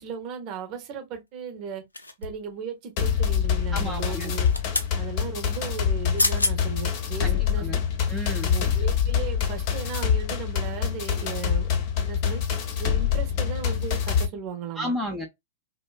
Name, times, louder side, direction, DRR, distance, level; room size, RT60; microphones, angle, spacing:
voice 1, 0.0-1.8 2.2-4.5 5.0-7.7 8.4-11.7 12.0-12.4 12.8-14.9, right 6 dB, 40° right, 0.9 m, -36 dB
sound 1, 1.9-2.5 4.2-4.9 5.9-6.0 6.2-6.6 7.1-7.2, left 2 dB, 85° left, 0.4 m, -27 dB
sound 2, 3.0-14.3, left 8 dB, 45° left, 0.7 m, -25 dB
voice 2, 3.7-4.3 7.2-7.8 8.1-8.5 14.8-15.3, left 1 dB, 5° right, 0.6 m, -32 dB
2.5 x 2.2 x 2.3 m
figure-of-eight pair, 100°, 0 cm